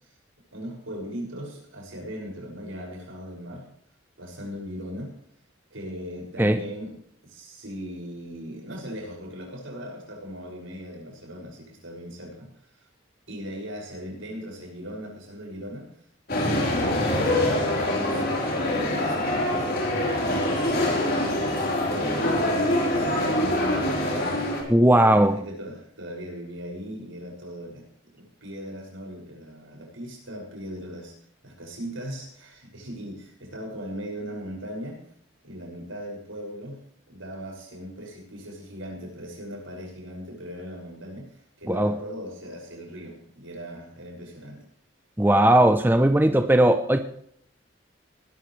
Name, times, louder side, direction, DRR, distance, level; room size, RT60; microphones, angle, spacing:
voice 1, 0.5-3.7 4.2-5.1 5.7-6.9 7.2-12.5 13.3-15.9 16.3-18.2 18.6-21.3 21.9-24.4 25.1-27.9 28.1-31.1 31.4-35.0 35.4-36.8 37.1-41.3 41.6-44.6, equal, 85° right, -1 dB, 6.6 m, -38 dB
sound 1, 16.3-24.6, left 1 dB, 50° left, 4.3 m, -24 dB
voice 2, 24.7-25.4 41.7-42.0 45.2-47.0, right 1 dB, 10° right, 8 dB, 0.7 m, -18 dB
19.5 x 13.0 x 3.3 m, 0.65 s
head